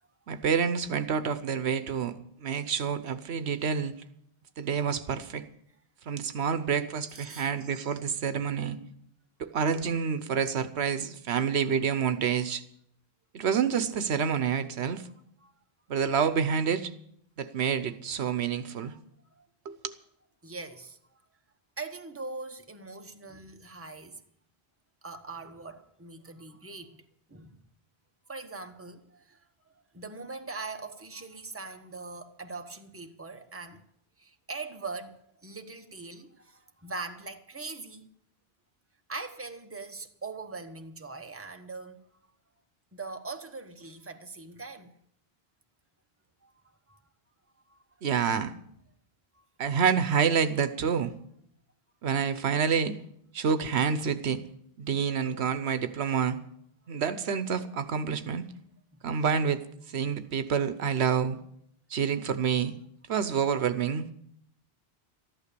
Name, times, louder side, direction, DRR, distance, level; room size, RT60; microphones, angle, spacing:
voice 1, 0.3-2.1 2.4-3.9 4.6-5.5 6.1-8.8 9.4-12.6 13.3-15.0 15.9-16.9 17.4-18.9 19.6-19.9 48.0-48.5 49.6-51.1 52.0-53.0 53.3-54.4 54.8-56.4 56.9-58.4 59.0-59.6 59.9-61.4 61.9-62.7 63.1-64.1, right 7 dB, 90° right, 1.1 m, -28 dB
voice 2, 7.1-7.5 15.4-15.5 18.5-18.6 19.3-19.5 20.4-21.0 21.8-24.2 25.0-27.0 27.3-27.6 28.3-33.8 34.2-38.1 39.1-42.1 42.9-45.0 46.4-47.0 47.7-47.8 49.3-49.4, right 3 dB, 15° right, 1.0 m, -42 dB
14.0 x 11.5 x 6.8 m
omnidirectional pair, 1.1 m